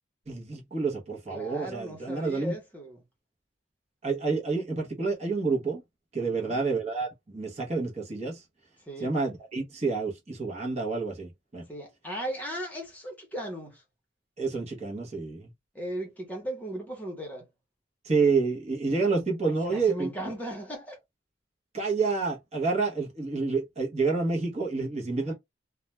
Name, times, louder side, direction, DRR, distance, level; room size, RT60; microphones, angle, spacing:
voice 1, 0.3-2.5 4.0-5.8 6.1-8.4 9.0-11.7 14.4-15.5 18.0-20.1 21.7-25.3, right 4 dB, 35° right, 0.8 m, -28 dB
voice 2, 1.3-3.0 6.2-6.6 8.8-9.2 11.7-13.8 15.7-17.5 19.4-21.0 25.2-25.3, right 1 dB, 10° left, 0.8 m, -37 dB
2.3 x 2.1 x 3.0 m
head